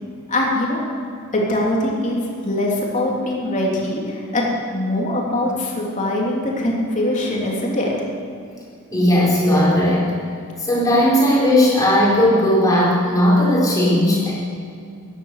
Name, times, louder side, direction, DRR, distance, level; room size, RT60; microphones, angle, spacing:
voice 1, 0.3-0.8 1.3-7.9, left 1 dB, 35° left, -3 dB, 3.1 m, -22 dB
voice 2, 8.9-10.0 10.6-14.3, left 1 dB, 15° left, -6 dB, 4.9 m, -16 dB
16.0 x 11.0 x 6.6 m, 2.3 s
head